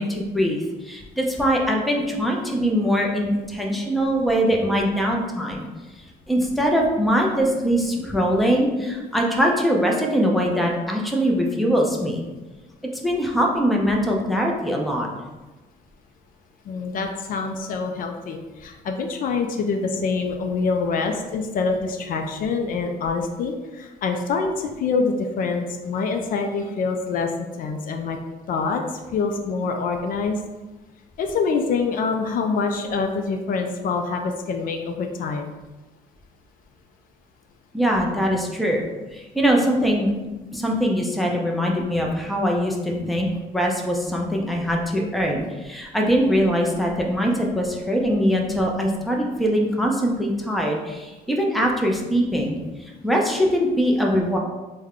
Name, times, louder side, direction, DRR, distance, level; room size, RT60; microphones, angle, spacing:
voice 1, 0.0-5.6 6.3-12.2 12.9-15.1 37.7-38.8 39.1-40.1 40.5-52.6 53.0-54.4, equal, ahead, 0 dB, 0.5 m, -22 dB
voice 2, 8.8-9.1 16.7-28.2 28.5-28.8 29.1-30.4 31.2-35.5 48.7-48.8, left 4 dB, 55° left, 4 dB, 0.4 m, -25 dB
3.5 x 2.2 x 3.5 m, 1.2 s
cardioid pair, 110°, 17 cm